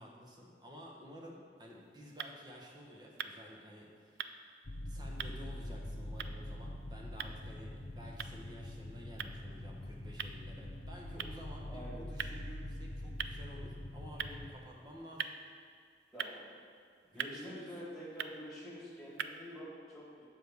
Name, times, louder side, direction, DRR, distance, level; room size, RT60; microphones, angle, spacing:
voice 1, 0.0-4.2 4.8-15.4 17.1-17.7, equal, 25° right, -2 dB, 1.1 m, -52 dB
sound 1, 1.6-19.6, right 7 dB, 65° right, 0.3 m, -47 dB
sound 2, 4.6-14.5, left 1 dB, 65° left, 0.8 m, -44 dB
voice 2, 11.7-12.0 16.1-16.4 17.1-20.3, equal, ahead, -7 dB, 1.9 m, -47 dB
7.6 x 4.7 x 6.7 m, 2.2 s
head